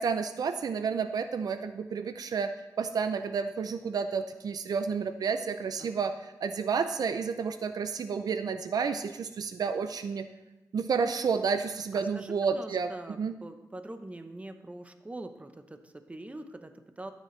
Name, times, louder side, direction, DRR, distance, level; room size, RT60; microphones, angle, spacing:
voice 1, 0.0-2.5 2.8-10.3 10.7-12.9 13.2-13.4, right 5 dB, 75° right, 10 dB, 0.5 m, -30 dB
voice 2, 11.9-17.1, right 1 dB, 20° right, 8 dB, 0.9 m, -44 dB
13.0 x 9.4 x 3.3 m, 0.97 s
cardioid pair, 75°, 7 cm